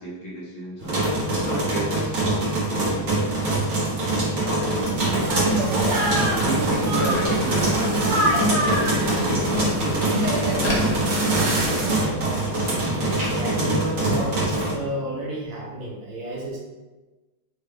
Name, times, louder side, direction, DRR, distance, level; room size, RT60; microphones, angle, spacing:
voice 1, 0.0-4.0 4.4-4.7 5.0-5.7 6.2-12.0, equal, 75° left, -6 dB, 2.2 m, -35 dB
sound 1, 0.8-14.7, right 2 dB, 45° right, 1.3 m, -24 dB
Telephone, 4.4-11.8, left 3 dB, 45° left, 0.9 m, -36 dB
sound 2, 5.0-12.0, right 1 dB, 80° right, 1.8 m, -25 dB
voice 2, 5.9-6.3 13.1-16.6, equal, 65° right, -4 dB, 1.7 m, -32 dB
5.4 x 2.6 x 3.3 m, 1.2 s
omnidirectional pair, 2.3 m